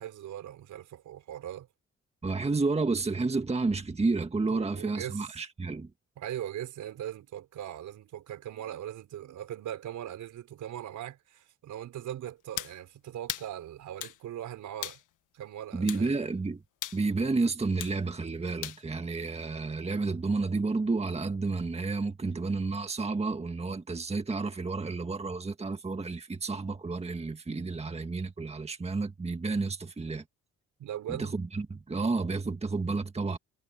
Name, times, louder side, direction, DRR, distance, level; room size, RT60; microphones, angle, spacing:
voice 1, 0.0-1.7 4.5-5.3 6.2-15.0 15.3-16.2 30.8-31.3, right 11 dB, 75° right, 5.3 m, -40 dB
voice 2, 2.2-5.9 15.7-16.6 16.9-30.2 31.1-33.4, right 3 dB, 20° right, 1.7 m, -31 dB
sound 1, 12.6-12.8 13.3-13.5 14.0-14.2 14.8-15.0 15.9-16.1 16.8-17.0 17.8-18.0 18.6-18.8, left 14 dB, 85° left, 1.5 m, -37 dB
cardioid pair, 90°, 30 cm